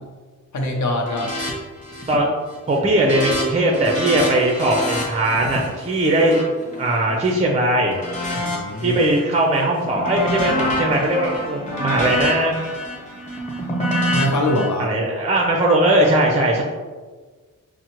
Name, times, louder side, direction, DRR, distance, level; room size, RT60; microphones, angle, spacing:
voice 1, 0.5-1.3 8.4-9.0 13.8-14.9, left 1 dB, 60° left, 1 dB, 0.7 m, -23 dB
sound 1, 1.0-1.5 1.8-2.2 2.6-7.4 7.9-9.2 9.6-14.7, left 1 dB, 20° left, 1.0 m, -27 dB
voice 2, 2.7-8.0 8.8-12.5 14.8-16.6, right 1 dB, 20° right, 0 dB, 0.4 m, -19 dB
6.0 x 2.1 x 2.9 m, 1.4 s
wide cardioid pair, 175°, 32 cm